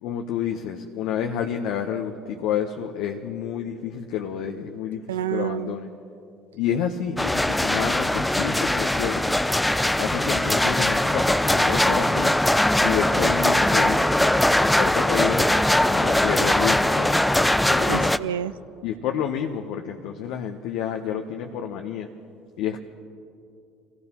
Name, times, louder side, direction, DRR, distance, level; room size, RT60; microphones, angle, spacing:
voice 1, 0.0-5.9 6.5-9.4 10.0-12.3 12.8-14.2 14.6-15.5 15.9-17.1 17.7-18.1 18.8-22.1 22.6-22.8, left 8 dB, 70° left, 3 dB, 0.8 m, -29 dB
voice 2, 5.1-5.8 17.9-18.5, right 10 dB, 90° right, 16 dB, 0.3 m, -28 dB
sound 1, 7.2-18.2, left 1 dB, 5° left, 0.5 m, -21 dB
26.0 x 17.0 x 3.0 m, 2.6 s
hypercardioid pair, 70°, 0 cm